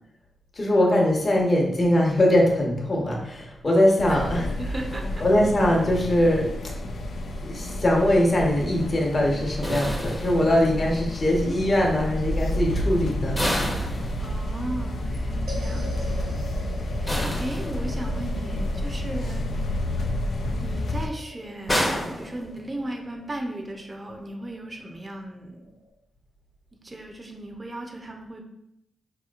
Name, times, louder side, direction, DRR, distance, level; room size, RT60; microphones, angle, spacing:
voice 1, 0.5-4.5 5.2-6.7 7.4-13.7, left 1 dB, 40° left, -1 dB, 1.0 m, -22 dB
sound 1, 4.0-21.1, left 1 dB, 65° left, 0.4 m, -30 dB
voice 2, 4.6-5.2 14.2-16.1 16.8-19.5 20.6-25.6 26.7-28.4, right 1 dB, 30° right, 2 dB, 0.6 m, -36 dB
sound 2, 9.6-10.9 13.3-14.7 17.1-18.2 21.7-23.0, equal, 10° left, 0.7 m, -29 dB
sound 3, 15.5-25.9, left 2 dB, 75° right, 0.8 m, -44 dB
4.6 x 2.9 x 2.4 m, 0.79 s
cardioid pair, 65°, 0 cm